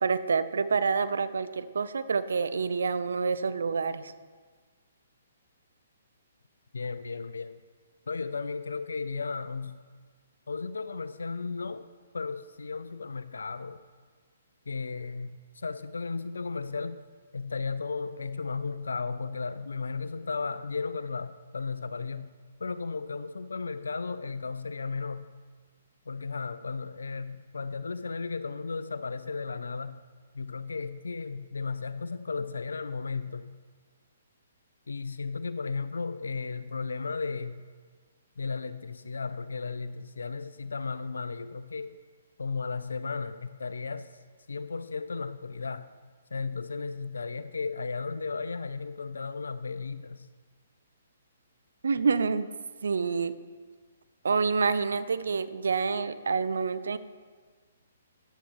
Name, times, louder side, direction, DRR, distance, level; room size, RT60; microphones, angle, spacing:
voice 1, 0.0-4.1 51.8-52.5 52.8-53.3 54.2-57.0, right 5 dB, 65° right, 14 dB, 0.7 m, -27 dB
voice 2, 6.7-7.6 8.1-9.8 10.5-11.9 12.1-13.8 14.7-17.0 17.3-25.3 26.1-30.0 30.3-33.5 34.9-37.7 38.4-42.0 42.4-44.1 44.5-45.9 46.3-50.3, left 4 dB, 70° left, 14 dB, 0.4 m, -35 dB
14.0 x 10.0 x 3.1 m, 1.5 s
figure-of-eight pair, 125°, 0 cm